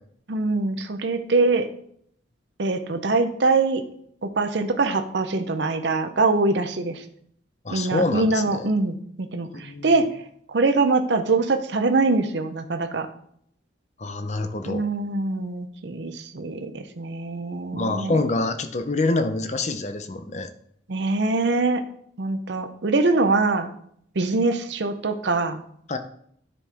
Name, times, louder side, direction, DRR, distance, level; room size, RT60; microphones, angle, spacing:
voice 1, 0.3-1.7 2.6-3.8 4.2-7.0 7.7-10.1 10.5-13.1 14.7-18.2 20.9-21.8 22.2-23.7 24.1-25.6, right 3 dB, 65° right, 8 dB, 0.7 m, -23 dB
voice 2, 7.6-8.7 9.5-10.0 14.0-14.8 17.7-20.5 25.9-26.0, left 2 dB, 35° left, 8 dB, 0.6 m, -26 dB
9.9 x 5.5 x 3.5 m, 0.67 s
head